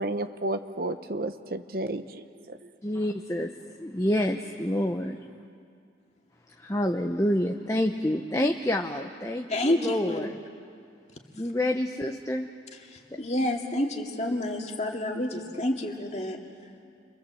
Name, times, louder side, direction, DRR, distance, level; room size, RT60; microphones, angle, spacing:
voice 1, 0.0-2.7, right 2 dB, 50° right, 9 dB, 0.9 m, -32 dB
voice 2, 2.8-3.5 3.8-5.2 6.6-10.4 11.4-12.5, left 1 dB, 15° left, 3 dB, 0.8 m, -28 dB
voice 3, 9.5-10.2 12.9-16.4, left 1 dB, 35° left, 1 dB, 2.3 m, -29 dB
29.5 x 24.0 x 7.8 m, 2.3 s
head